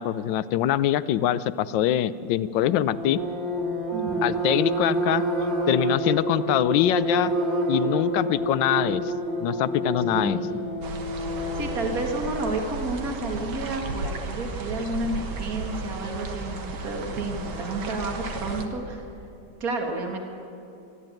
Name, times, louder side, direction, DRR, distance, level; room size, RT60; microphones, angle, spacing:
voice 1, 0.0-3.2 4.2-5.2 5.7-7.3 7.7-9.1 9.4-10.4, left 12 dB, 75° left, 16 dB, 1.3 m, -24 dB
sound 1, 2.6-12.2, right 1 dB, 30° right, 4.0 m, -28 dB
voice 2, 3.9-4.3 10.1-10.6 11.5-19.0 19.6-20.2, right 2 dB, 50° right, 2 dB, 2.6 m, -31 dB
sound 2, 10.8-18.7, right 3 dB, 85° right, 2.3 m, -34 dB
22.5 x 14.0 x 9.0 m, 2.7 s
omnidirectional pair, 2.1 m